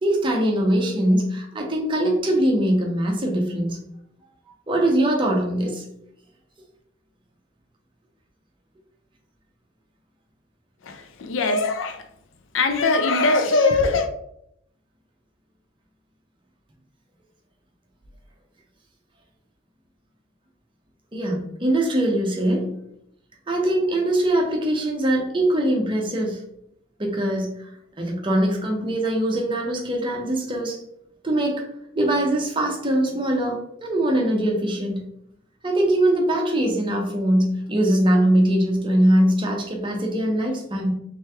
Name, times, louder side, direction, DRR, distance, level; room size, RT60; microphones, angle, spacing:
voice 1, 0.0-3.8 4.7-5.8 21.1-22.7 23.5-26.4 27.0-27.5 28.0-30.8 31.2-31.6 31.9-35.0 35.6-40.9, right 1 dB, 25° right, 1 dB, 0.7 m, -22 dB
voice 2, 10.8-12.0 12.5-14.1, left 3 dB, 75° left, 8 dB, 0.5 m, -21 dB
3.3 x 3.1 x 3.4 m, 0.75 s
head